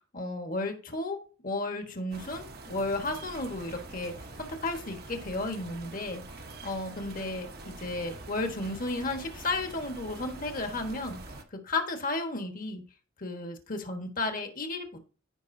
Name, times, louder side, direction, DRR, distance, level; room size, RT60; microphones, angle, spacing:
voice 1, 0.1-1.2 1.4-11.2 11.5-12.8 13.2-14.9, left 2 dB, 45° left, 4 dB, 1.5 m, -33 dB
sound 1, 2.1-11.4, right 2 dB, 50° right, 1.1 m, -45 dB
15.5 x 5.1 x 2.7 m, 0.37 s
head